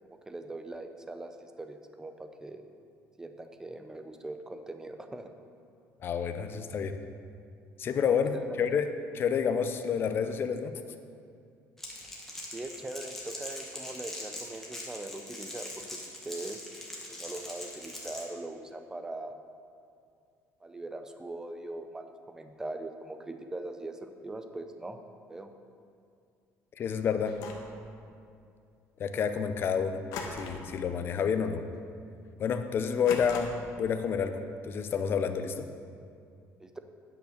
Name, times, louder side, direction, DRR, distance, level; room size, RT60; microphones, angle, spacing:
voice 1, 0.3-2.7 3.2-5.3 8.3-8.4 12.5-16.6 17.1-19.4 20.6-25.0 25.3-25.5 36.6-36.8, right 2 dB, 10° right, 7 dB, 0.5 m, -41 dB
voice 2, 6.0-7.0 7.8-10.8 26.8-27.4 29.0-30.0 30.3-31.6 32.4-35.7, left 6 dB, 40° left, 8 dB, 0.6 m, -29 dB
Crackle, 11.8-18.3, left 1 dB, 5° left, 1.4 m, -42 dB
sound 1, 27.3-27.8 30.1-30.8 31.1-31.4 31.8-31.9 33.1-33.8, left 4 dB, 80° left, 1.2 m, -40 dB
9.1 x 5.5 x 6.4 m, 2.4 s
cardioid pair, 150°, 6 cm